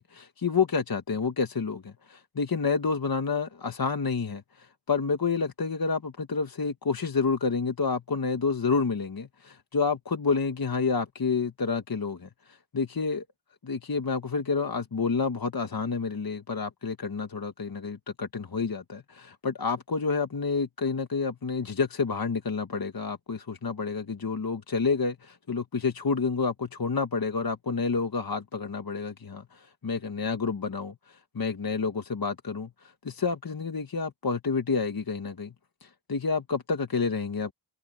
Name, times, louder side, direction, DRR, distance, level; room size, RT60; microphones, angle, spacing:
voice 1, 0.0-13.2 13.6-35.5 35.8-37.5, left 4 dB, 45° left, 1.4 m, -29 dB
wide cardioid pair, 105°, 47 cm